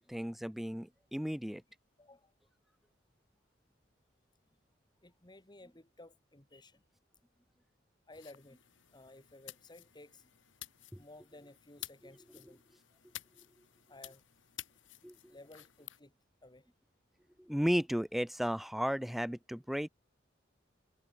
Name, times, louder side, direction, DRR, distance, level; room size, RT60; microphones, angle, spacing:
voice 1, 0.0-1.6 10.9-11.0 15.0-15.4 17.4-19.9, equal, ahead, 0.3 m, -34 dB
voice 2, 2.0-2.3 5.0-6.8 8.1-8.6 8.9-10.2 11.0-12.6 13.9-14.2 15.3-16.1 16.4-16.7, left 2 dB, 25° left, 2.0 m, -56 dB
sound 1, 8.1-16.0, left 14 dB, 85° left, 2.1 m, -52 dB
head